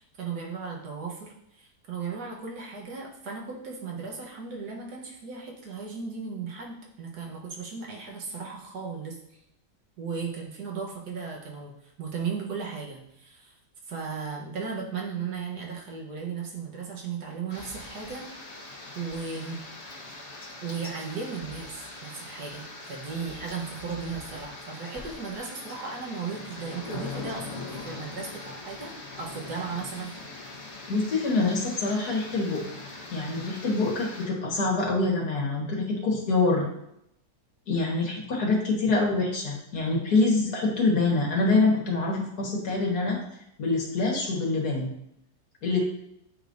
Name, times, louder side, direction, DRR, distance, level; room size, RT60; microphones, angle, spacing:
voice 1, 0.0-9.2 10.0-13.5 13.9-18.3 19.0-19.7 20.6-30.2, right 5 dB, 75° right, -1 dB, 1.7 m, -36 dB
sound 1, 17.5-34.3, left 3 dB, 45° left, 1.2 m, -42 dB
sound 2, 17.6-18.1 19.1-19.2 21.4-21.9 22.3-22.6 23.0-23.4 23.8-24.4 24.9-25.4, left 4 dB, 25° left, 1.0 m, -48 dB
voice 2, 30.9-32.6 33.1-36.7 37.7-43.2 43.6-44.9 45.6-45.8, left 3 dB, 70° left, -2 dB, 1.8 m, -25 dB
8.3 x 4.9 x 2.6 m, 0.79 s
omnidirectional pair, 1.7 m